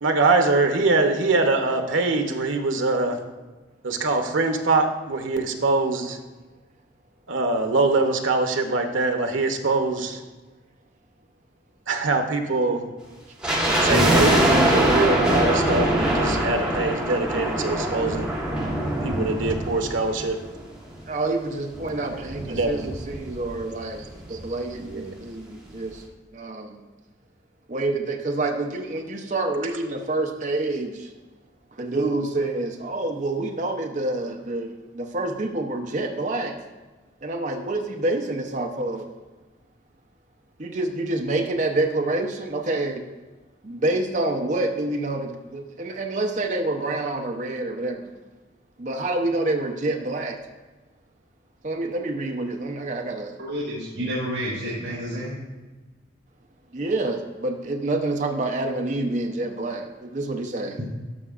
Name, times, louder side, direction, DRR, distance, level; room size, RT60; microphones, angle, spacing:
voice 1, 0.0-3.2 3.8-6.2 7.3-10.2 11.9-12.8 13.8-18.3 19.0-20.4 22.5-22.9 24.3-24.4 24.8-25.2, right 3 dB, 90° right, 5 dB, 0.8 m, -23 dB
sound 1, 13.4-20.7 21.0-21.1 21.7-23.6 23.8-23.9 24.1-24.4 24.9-25.0, right 1 dB, 5° right, 1.2 m, -23 dB
voice 2, 21.1-26.0 26.3-26.8 27.7-31.1 31.7-36.7 37.2-39.1 40.6-43.1 43.6-48.2 48.8-50.4 51.6-53.4 56.7-60.8, right 2 dB, 40° right, 3 dB, 0.6 m, -27 dB
voice 3, 53.4-55.4, equal, 65° right, -7 dB, 2.2 m, -29 dB
12.5 x 5.7 x 2.4 m, 1.3 s
head